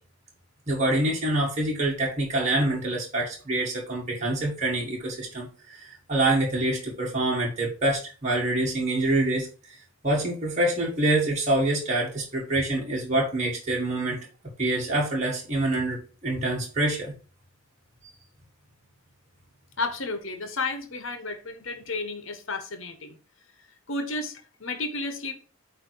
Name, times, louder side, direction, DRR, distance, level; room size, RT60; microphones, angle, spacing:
voice 1, 0.7-9.5 10.0-14.3 14.6-17.1, right 2 dB, 30° right, 1.7 m, -26 dB
voice 2, 19.8-23.2 23.9-25.3, left 3 dB, 60° left, 1.3 m, -32 dB
8.8 x 3.0 x 4.7 m
head